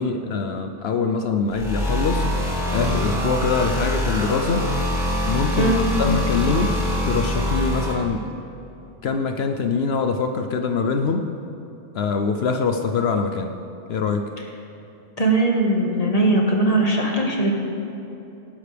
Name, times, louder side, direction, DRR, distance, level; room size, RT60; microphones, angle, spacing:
voice 1, 0.0-2.3 2.7-4.7 5.3-5.7 6.0-6.8 7.0-8.2 9.0-11.3 11.9-13.5 13.9-14.3, left 5 dB, 65° left, 6 dB, 0.8 m, -23 dB
sound 1, 1.5-7.9, left 1 dB, 5° right, 3.0 m, -24 dB
voice 2, 15.2-17.5, right 2 dB, 30° left, -1 dB, 1.7 m, -20 dB
18.5 x 11.0 x 3.4 m, 2.9 s
omnidirectional pair, 1.2 m